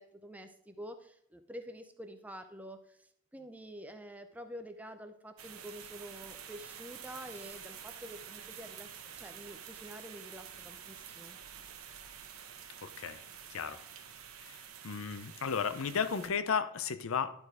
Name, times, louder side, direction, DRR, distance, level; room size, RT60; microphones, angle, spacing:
voice 1, 0.0-11.4, equal, 5° right, 7 dB, 0.5 m, -48 dB
sound 1, 5.4-16.3, right 8 dB, 80° right, 1.0 m, -49 dB
voice 2, 12.8-13.2 13.5-13.8 14.4-17.3, left 6 dB, 70° left, 12 dB, 0.6 m, -34 dB
11.5 x 4.5 x 4.8 m, 0.75 s
head